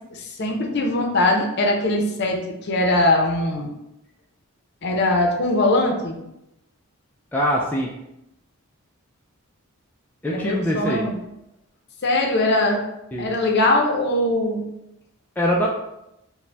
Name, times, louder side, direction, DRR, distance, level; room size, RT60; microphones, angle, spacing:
voice 1, 0.1-3.7 4.8-6.2 10.3-11.2 12.0-12.8 13.2-14.6, left 2 dB, 50° left, 2 dB, 0.6 m, -21 dB
voice 2, 7.3-7.9 10.2-11.0 13.1-13.3 15.4-15.7, equal, 10° left, -3 dB, 0.3 m, -22 dB
4.9 x 2.1 x 3.3 m, 0.87 s
head